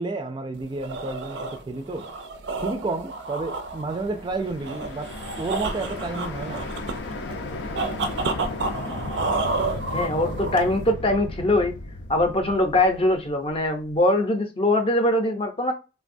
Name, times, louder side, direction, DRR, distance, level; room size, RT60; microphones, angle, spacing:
voice 1, 0.0-2.1 2.6-6.8, right 3 dB, 25° right, 0.3 m, -31 dB
sound 1, 0.6-10.9, right 3 dB, 90° right, 0.5 m, -31 dB
sound 2, 3.7-13.7, left 2 dB, 85° left, 0.5 m, -35 dB
voice 2, 9.9-11.7 12.1-15.7, left 1 dB, 30° left, 0.6 m, -22 dB
3.3 x 2.2 x 2.5 m
head